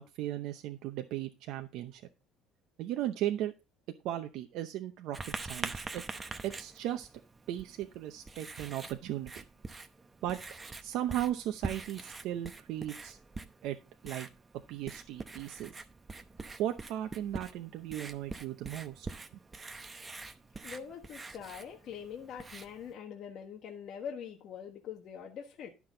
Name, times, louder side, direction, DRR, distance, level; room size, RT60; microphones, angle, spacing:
voice 1, 0.0-2.0 2.8-3.5 4.0-5.2 5.5-6.0 6.4-7.1 7.5-9.3 10.2-10.4 10.8-13.2 13.6-13.8 14.0-14.3 14.7-15.7 16.6-19.1, right 12 dB, 65° right, 0.7 m, -36 dB
Writing, 5.1-22.9, right 3 dB, 15° right, 0.8 m, -45 dB
voice 2, 20.6-25.7, left 8 dB, 50° left, 1.3 m, -43 dB
11.5 x 6.0 x 3.8 m
cardioid pair, 150°, 0 cm